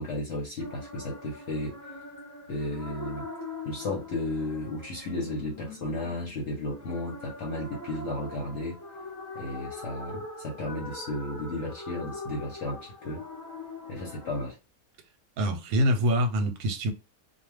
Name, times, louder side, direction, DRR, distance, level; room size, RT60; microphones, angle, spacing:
voice 1, 0.0-1.7 2.5-3.3 3.6-8.8 9.3-13.2 13.9-14.6, left 2 dB, 55° left, 1.0 m, -34 dB
sound 1, 0.6-14.5, left 2 dB, 25° left, 0.4 m, -42 dB
voice 2, 15.4-16.9, equal, 80° right, 1.1 m, -25 dB
2.4 x 2.2 x 3.1 m
omnidirectional pair, 1.5 m